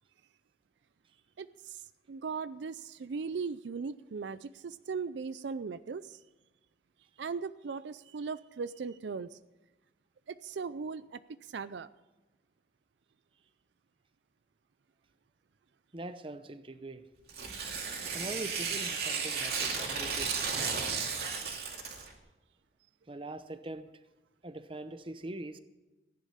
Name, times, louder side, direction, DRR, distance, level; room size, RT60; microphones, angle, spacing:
voice 1, 1.4-1.8 2.1-6.2 7.2-9.4 10.3-11.9, right 5 dB, 75° right, 0.4 m, -38 dB
voice 2, 15.9-17.1 18.1-20.8 23.1-24.0 24.4-25.6, right 2 dB, 30° right, 0.8 m, -43 dB
Tearing, 17.3-22.1, right 5 dB, 60° right, 2.4 m, -34 dB
15.5 x 10.5 x 5.7 m
head